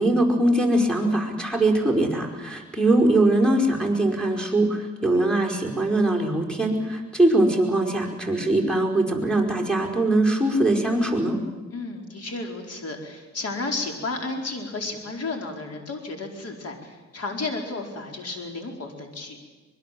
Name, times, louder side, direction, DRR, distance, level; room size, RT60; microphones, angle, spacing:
voice 1, 0.0-11.4, right 1 dB, 5° left, 1 dB, 5.0 m, -22 dB
voice 2, 11.7-19.4, left 3 dB, 55° left, 3 dB, 4.8 m, -32 dB
24.5 x 21.5 x 7.8 m, 1.3 s
cardioid pair, 90°, 30 cm